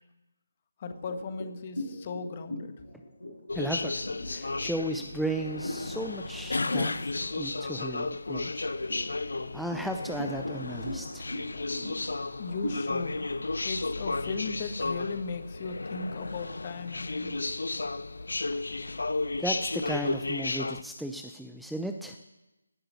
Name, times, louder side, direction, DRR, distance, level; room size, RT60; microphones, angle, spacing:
voice 1, 0.8-2.8 12.4-13.3 13.6-17.6, left 4 dB, 30° left, 9 dB, 1.6 m, -37 dB
sound 1, 0.9-6.0 6.4-6.7 7.1-7.9 8.5-15.2, left 1 dB, 85° left, 7.5 m, -40 dB
sound 2, 3.5-20.8, left 3 dB, 65° left, 0.9 m, -33 dB
voice 2, 3.5-4.0 4.3-9.0 9.5-11.3 18.5-18.6 19.4-22.2, right 1 dB, ahead, 4 dB, 0.7 m, -35 dB
17.0 x 7.7 x 9.6 m, 1.0 s
figure-of-eight pair, 155°, 0 cm